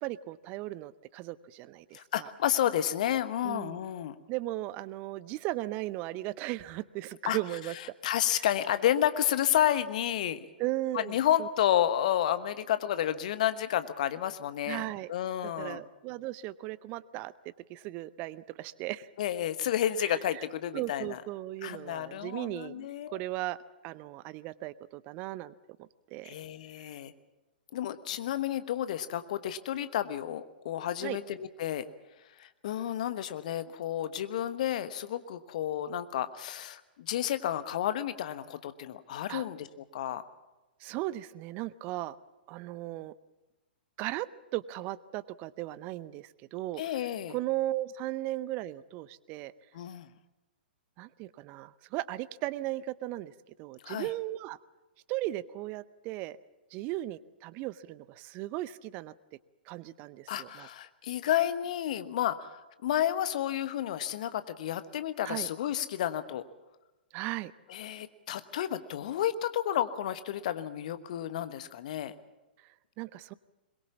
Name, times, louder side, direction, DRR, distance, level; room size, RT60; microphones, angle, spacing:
voice 1, 0.0-2.3 3.4-3.8 4.3-7.7 8.3-8.5 10.6-11.5 14.7-15.1 15.4-17.3 17.7-19.1 20.0-20.4 20.7-23.6 23.8-25.5 25.8-26.3 31.0-31.2 39.3-39.5 40.8-42.2 42.5-43.1 44.0-46.8 47.3-49.5 51.0-54.6 55.1-56.4 56.7-59.1 59.7-60.7 65.2-65.5 67.1-67.5 73.0-73.3, right 16 dB, 30° right, 19 dB, 0.6 m, -37 dB
voice 2, 1.9-4.2 7.3-7.4 8.0-10.5 10.9-15.8 19.2-21.2 21.6-23.2 26.2-27.1 27.7-31.8 32.4-39.7 39.9-40.2 46.8-47.4 49.7-50.1 53.8-54.1 60.3-66.4 67.7-72.1, left 11 dB, 50° left, 12 dB, 1.2 m, -31 dB
22.0 x 21.5 x 7.2 m, 1.1 s
figure-of-eight pair, 110°, 5 cm